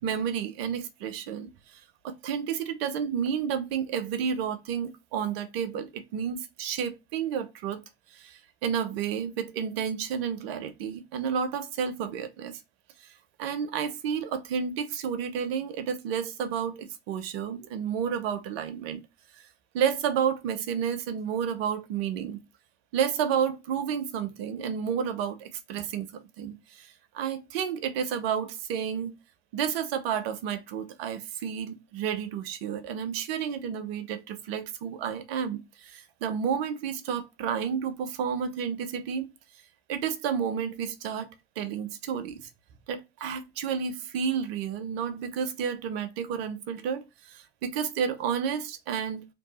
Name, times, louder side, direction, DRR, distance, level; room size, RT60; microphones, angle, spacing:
voice 1, 0.0-7.8 8.1-12.6 13.4-19.0 19.4-19.5 19.7-22.4 22.9-29.2 29.5-39.3 39.9-42.4 42.9-49.3, right 7 dB, 80° right, 0.7 m, -31 dB
3.5 x 3.0 x 4.0 m
hypercardioid pair, 55°, 30 cm